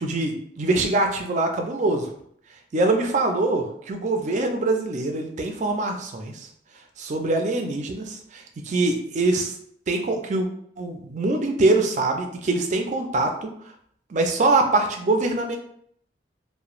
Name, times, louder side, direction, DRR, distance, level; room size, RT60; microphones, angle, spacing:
voice 1, 0.0-2.1 2.7-6.5 7.0-9.5 9.9-10.5 10.8-13.5 14.1-15.6, right 2 dB, 40° right, 4 dB, 0.4 m, -23 dB
2.9 x 2.1 x 2.4 m, 0.66 s
head